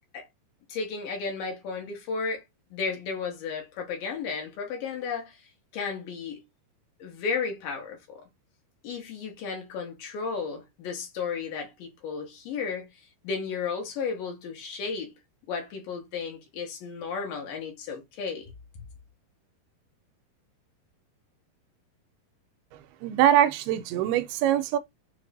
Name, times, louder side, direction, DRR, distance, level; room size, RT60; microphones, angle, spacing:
voice 1, 0.7-2.4 2.7-5.4 5.7-6.4 7.0-8.3 8.8-12.9 13.2-15.1 15.5-18.5, left 5 dB, 70° left, 2.6 m, -33 dB
voice 2, 23.0-24.8, right 11 dB, 85° right, 2.5 m, -23 dB
6.9 x 2.6 x 2.6 m
omnidirectional pair, 4.5 m